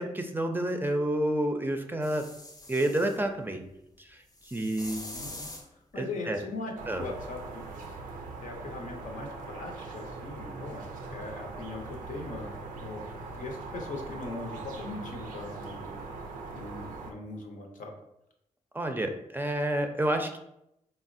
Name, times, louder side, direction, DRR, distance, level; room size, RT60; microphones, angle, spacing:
voice 1, 0.0-2.3 2.7-3.6 4.0-4.2 4.5-5.0 6.0-6.4 6.9-7.0 18.7-20.4, right 1 dB, 15° right, 4 dB, 0.5 m, -29 dB
sound 1, 2.0-3.2 4.3-5.7 7.8-7.9, left 2 dB, 25° left, 0.6 m, -44 dB
voice 2, 5.1-5.5 5.9-8.0 8.4-13.0 13.3-16.0 16.5-17.9, left 2 dB, 70° left, 1 dB, 0.7 m, -40 dB
sound 2, 6.8-17.1, right 3 dB, 85° right, 0.4 m, -41 dB
3.9 x 2.0 x 2.5 m, 0.81 s
supercardioid pair, 40°, 14 cm